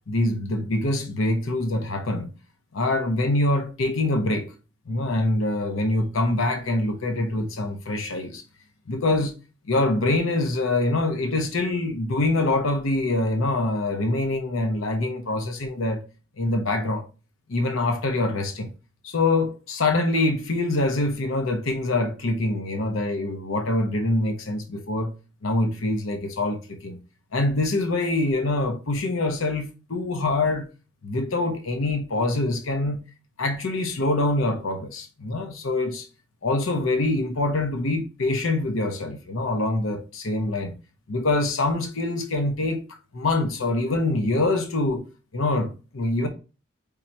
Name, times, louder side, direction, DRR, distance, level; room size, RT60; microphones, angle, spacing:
voice 1, 0.1-2.3 2.7-4.5 4.9-8.4 8.9-9.4 9.7-16.0 16.4-17.0 17.5-18.7 19.0-25.1 25.4-27.0 27.3-30.7 31.0-33.0 33.4-36.1 36.4-40.7 41.1-42.9 43.1-45.0 45.3-46.3, left 2 dB, 85° left, 0.8 m, -25 dB
4.3 x 3.7 x 2.9 m
head